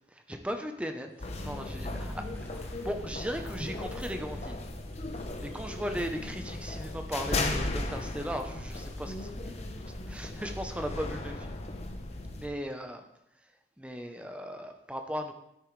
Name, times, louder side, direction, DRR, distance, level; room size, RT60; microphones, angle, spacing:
voice 1, 0.1-2.2 2.5-4.6 5.4-9.7 10.1-11.6 12.3-13.0 13.4-13.5 13.8-15.3, equal, 5° right, 5 dB, 0.6 m, -37 dB
sound 1, 1.1-10.6, equal, 10° left, 1.2 m, -54 dB
sound 2, 1.2-12.5, left 2 dB, 35° left, 0.7 m, -36 dB
10.0 x 8.7 x 3.2 m, 0.82 s
head